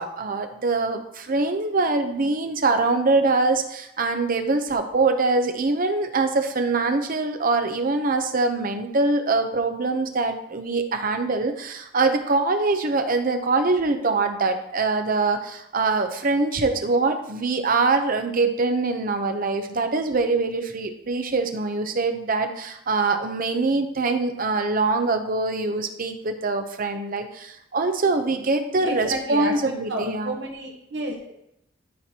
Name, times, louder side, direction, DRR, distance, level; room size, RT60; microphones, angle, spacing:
voice 1, 0.0-30.3, right 3 dB, 50° right, 6 dB, 0.8 m, -23 dB
voice 2, 28.8-29.5 29.9-31.3, right 2 dB, 70° right, -1 dB, 1.3 m, -30 dB
12.5 x 4.5 x 2.9 m, 0.77 s
head